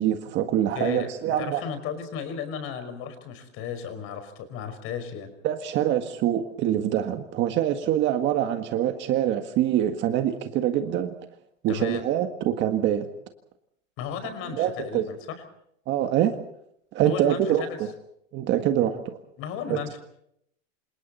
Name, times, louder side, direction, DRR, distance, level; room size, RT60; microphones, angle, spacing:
voice 1, 0.0-1.6 5.4-11.1 11.6-13.1 14.6-15.1 15.9-16.4 16.9-17.9 18.3-19.2 19.7-19.8, right 11 dB, 25° right, 7 dB, 1.7 m, -25 dB
voice 2, 0.7-5.3 11.7-12.0 14.0-15.4 17.1-17.8 19.4-20.0, left 7 dB, 30° left, 10 dB, 5.3 m, -34 dB
28.0 x 27.5 x 4.3 m, 0.73 s
supercardioid pair, 155°, 40 cm